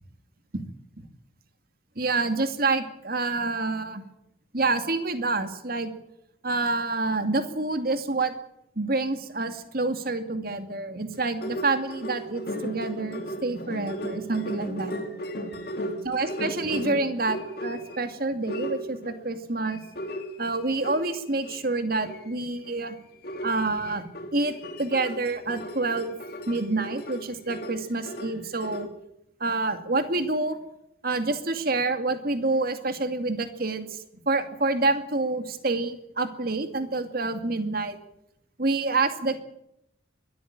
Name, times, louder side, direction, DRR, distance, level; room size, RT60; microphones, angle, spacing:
voice 1, 2.0-4.0 4.5-5.9 6.4-8.3 8.8-14.9 16.0-19.8 20.4-23.0 23.4-24.0 24.3-26.2 26.5-28.9 29.4-30.6 31.0-38.0 38.6-39.4, right 3 dB, 50° right, 8 dB, 2.4 m, -27 dB
sound 1, 11.1-18.0 18.5-19.2 19.7-21.6 22.0-22.3 22.6-22.8 23.2-28.9, equal, 50° left, 3.2 m, -36 dB
22.5 x 13.5 x 8.9 m, 0.80 s
head